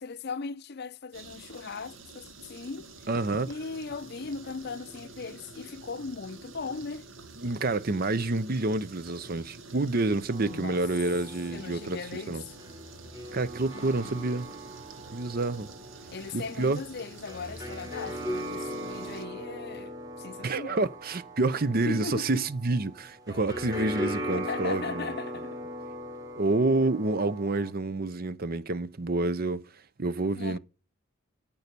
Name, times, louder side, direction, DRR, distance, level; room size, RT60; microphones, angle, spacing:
voice 1, 0.0-2.9 3.5-7.1 10.5-10.8 11.5-12.6 13.7-14.3 16.1-20.8 21.8-22.5 24.3-25.6 30.3-30.6, left 4 dB, 50° left, 0.6 m, -38 dB
sound 1, 1.1-19.2, right 3 dB, 75° right, 1.8 m, -48 dB
voice 2, 3.1-3.5 7.4-12.0 12.3-12.4 13.3-14.5 15.1-15.7 16.3-16.8 20.4-25.0 26.4-29.7 30.0-30.6, right 2 dB, 45° right, 0.7 m, -28 dB
sound 2, 10.3-27.7, equal, 20° right, 3.3 m, -39 dB
13.5 x 5.5 x 6.8 m
head